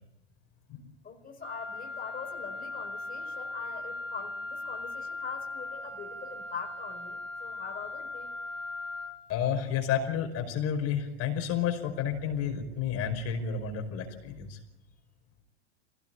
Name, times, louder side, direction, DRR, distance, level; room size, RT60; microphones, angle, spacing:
voice 1, 1.0-8.3, left 6 dB, 25° left, 2 dB, 4.9 m, -43 dB
Wind instrument woodwind instrument, 1.4-9.2, left 2 dB, 80° right, 5.8 m, -39 dB
voice 2, 9.3-14.6, left 8 dB, 45° left, 5 dB, 5.2 m, -31 dB
25.5 x 18.5 x 9.1 m, 0.87 s
hypercardioid pair, 100°, 36 cm